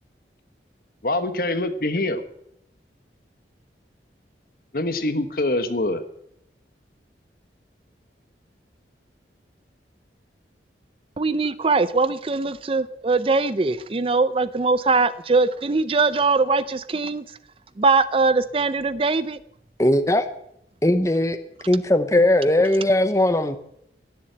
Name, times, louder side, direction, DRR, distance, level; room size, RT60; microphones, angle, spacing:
voice 1, 1.0-2.2 4.7-6.0, left 2 dB, 55° left, 10 dB, 1.3 m, -24 dB
voice 2, 11.2-17.2 17.8-19.4, right 3 dB, 30° right, 15 dB, 0.5 m, -21 dB
voice 3, 19.8-20.3 20.8-21.4 21.7-23.6, left 1 dB, 15° left, 10 dB, 0.8 m, -19 dB
17.0 x 7.4 x 8.9 m, 0.76 s
head